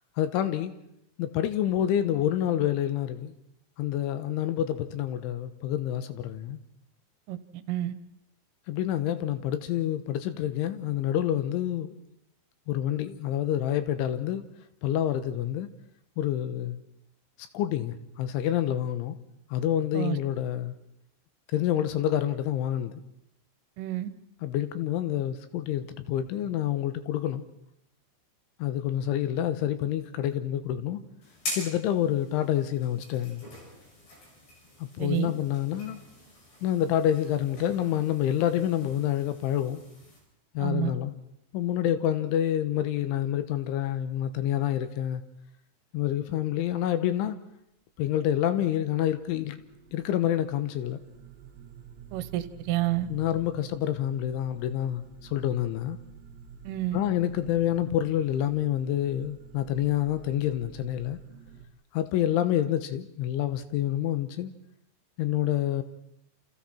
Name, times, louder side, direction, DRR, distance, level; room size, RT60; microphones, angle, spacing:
voice 1, 0.2-0.7 1.2-3.3 3.8-6.6 8.7-11.9 12.7-14.4 14.8-15.7 16.2-16.8 17.5-19.2 19.5-20.7 21.5-22.9 24.4-27.4 28.6-31.0 31.5-33.4 34.8-36.0 36.6-39.8 40.6-41.1 41.5-45.2 45.9-47.4 48.0-49.6 49.9-51.0 53.1-55.0 55.3-56.0 56.9-61.2 61.9-64.5 65.2-65.8, left 11 dB, 80° left, 3.5 m, -27 dB
voice 2, 7.3-7.9 19.9-20.2 23.8-24.1 35.0-35.3 40.6-40.9 52.1-53.1 56.7-57.0, right 14 dB, 80° right, 3.5 m, -29 dB
sound 1, 31.2-40.2, left 1 dB, 60° left, 8.6 m, -44 dB
sound 2, 48.1-61.7, right 8 dB, 55° right, 3.1 m, -49 dB
28.5 x 28.5 x 4.4 m
omnidirectional pair, 5.7 m